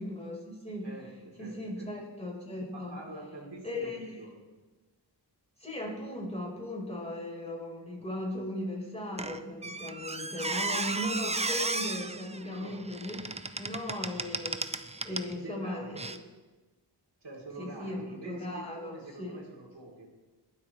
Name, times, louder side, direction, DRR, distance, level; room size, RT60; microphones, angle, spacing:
voice 1, 0.0-0.9 1.4-3.0 3.6-4.0 5.6-16.0 17.6-19.4, left 1 dB, 15° left, -2 dB, 4.7 m, -37 dB
voice 2, 0.8-1.9 2.7-3.9 4.2-4.4 12.4-12.8 15.1-16.1 17.2-20.1, right 2 dB, 70° right, -5 dB, 3.6 m, -46 dB
Squeak, 9.2-15.3 15.9-16.2, right 3 dB, 15° right, 0.5 m, -34 dB
21.5 x 8.1 x 3.3 m, 1.2 s
wide cardioid pair, 65°, 43 cm